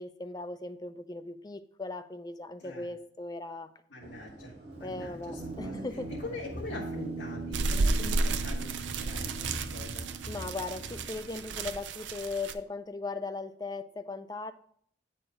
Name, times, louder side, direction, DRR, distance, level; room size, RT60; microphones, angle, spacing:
voice 1, 0.0-3.7 4.8-6.1 10.3-14.5, left 3 dB, 20° left, 11 dB, 0.4 m, -38 dB
voice 2, 2.6-2.9 3.9-5.8 6.1-10.1, left 2 dB, 85° left, -5 dB, 1.4 m, -43 dB
sound 1, 4.0-11.1, equal, 60° right, 1.5 m, -44 dB
Guitar, 5.4-11.9, right 4 dB, 30° right, 0.9 m, -42 dB
sound 2, 7.5-12.5, right 3 dB, 90° right, 0.5 m, -32 dB
9.0 x 4.4 x 4.9 m, 0.63 s
head